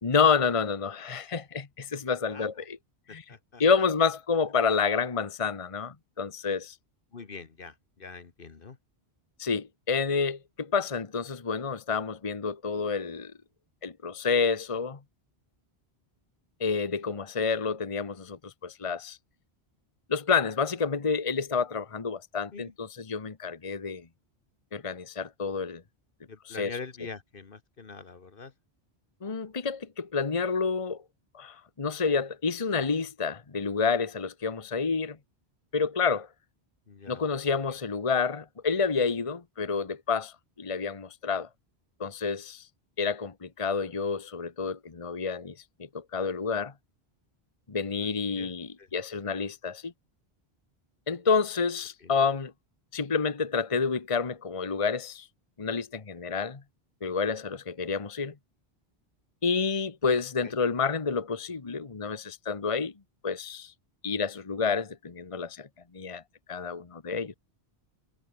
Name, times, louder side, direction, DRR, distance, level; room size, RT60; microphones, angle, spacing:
voice 1, 0.0-2.8 3.1-3.2 3.6-6.7 9.4-13.3 13.8-15.0 16.6-19.2 20.1-24.0 24.7-25.8 26.4-26.8 29.2-31.0 31.3-35.2 35.7-36.3 37.1-41.5 42.0-42.6 43.0-45.5 45.9-46.7 47.7-49.9 51.1-52.5 52.9-55.3 55.6-56.6 57.0-58.3 59.4-62.9 63.2-63.7 64.0-65.7 65.9-66.2 66.5-67.3, left 5 dB, 30° left, 1.2 m, -29 dB
voice 2, 3.1-3.6 7.1-8.8 22.5-22.7 26.3-28.5 36.9-37.2 48.3-48.5 48.8-48.9 52.0-52.1 60.4-60.5, left 4 dB, 55° left, 1.6 m, -44 dB
omnidirectional pair, 1.1 m